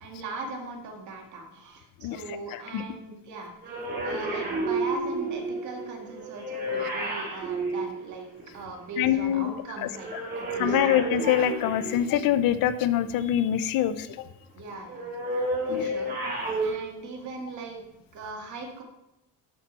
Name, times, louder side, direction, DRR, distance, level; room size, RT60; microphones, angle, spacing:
voice 1, 0.0-8.3 8.5-10.1 10.4-11.0 14.5-15.1 15.7-17.8 18.1-18.8, right 3 dB, 50° right, 1 dB, 1.9 m, -40 dB
voice 2, 2.5-2.8 9.0-9.5 9.8-10.2 10.6-14.1 15.7-15.9, left 11 dB, 65° left, 13 dB, 0.6 m, -25 dB
sound 1, 3.6-8.6 9.9-12.5 14.9-16.7, right 2 dB, 25° right, 3.1 m, -31 dB
10.5 x 5.9 x 4.1 m, 0.88 s
cardioid pair, 165°, 37 cm